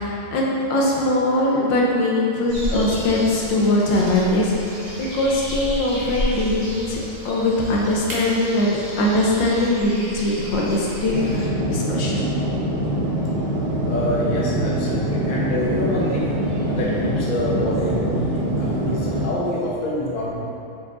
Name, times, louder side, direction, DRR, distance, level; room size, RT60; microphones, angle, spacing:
voice 1, 0.0-12.2, left 1 dB, 75° left, -3 dB, 1.5 m, -21 dB
sound 1, 2.5-11.5, equal, 25° right, 1.0 m, -32 dB
sound 2, 11.1-19.3, right 1 dB, 55° right, 0.7 m, -24 dB
voice 2, 13.8-16.3 16.7-20.3, left 1 dB, 35° left, -6 dB, 0.8 m, -26 dB
5.0 x 4.8 x 4.0 m, 2.5 s
omnidirectional pair, 2.1 m